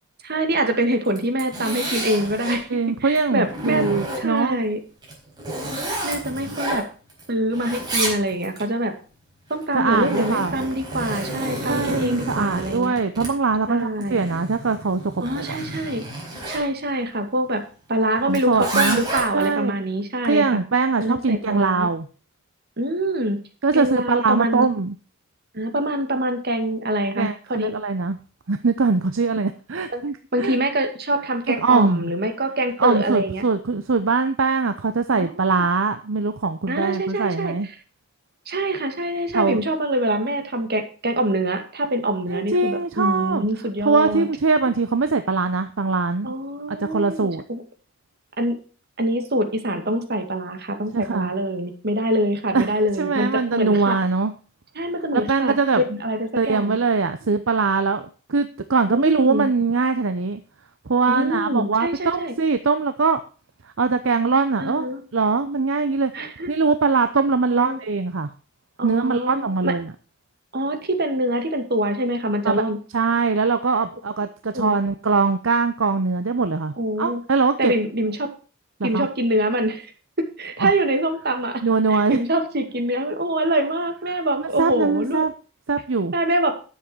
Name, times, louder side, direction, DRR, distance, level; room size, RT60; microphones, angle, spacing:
voice 1, 0.2-2.7 3.0-3.9 4.2-4.8 6.0-6.8 7.3-8.9 9.5-12.9 13.7-14.3 15.2-16.0 16.5-17.6 17.9-20.6 21.0-21.9 22.8-23.4 23.7-24.7 25.5-27.7 29.9-30.0 30.3-33.4 35.1-35.5 36.7-37.5 38.5-44.3 46.2-47.6 48.4-48.6 49.0-54.0 54.8-56.8 58.9-59.5 61.1-62.3 64.6-65.0 66.1-66.5 67.5-67.8 68.8-69.8 70.5-72.8 74.5-74.7 76.8-77.2 77.6-78.3 78.8-79.9 80.2-81.6 81.9-85.3 86.1-86.6, right 1 dB, 55° right, 5 dB, 2.3 m, -24 dB
Zipper (clothing), 1.0-2.6 3.2-4.5 5.0-7.2 7.5-8.6 9.5-16.7 18.3-19.5, right 1 dB, 20° right, 4.7 m, -30 dB
voice 2, 2.7-4.6 9.7-10.6 11.7-15.6 18.3-19.0 19.3-19.8 20.2-22.1 23.6-24.9 27.2-28.2 28.5-30.6 31.5-32.1 32.8-37.7 39.3-39.6 42.3-43.4 43.8-46.3 46.7-47.4 50.9-51.3 52.5-52.7 53.0-54.3 55.1-55.8 56.4-60.4 60.9-63.2 63.8-64.9 65.1-66.1 66.5-68.3 68.8-69.9 72.4-72.6 72.9-77.7 78.8-79.1 80.6-80.7 81.6-82.2 84.6-85.3 85.7-86.1, right 4 dB, 70° right, 9 dB, 0.7 m, -22 dB
10.5 x 7.5 x 6.2 m, 0.37 s
head